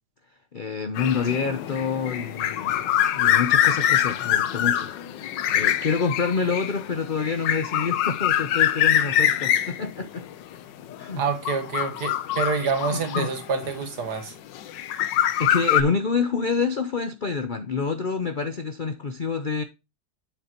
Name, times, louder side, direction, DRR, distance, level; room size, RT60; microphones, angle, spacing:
voice 1, 0.5-2.7 3.1-4.9 5.5-10.2 11.0-11.2 12.9-13.3 15.4-19.6, left 5 dB, 55° left, 0.5 m, -27 dB
sound 1, 1.0-13.8 14.6-15.8, left 11 dB, 85° left, 1.4 m, -24 dB
voice 2, 11.2-14.3, right 5 dB, 65° right, 2.0 m, -27 dB
7.9 x 7.0 x 2.9 m
omnidirectional pair, 1.9 m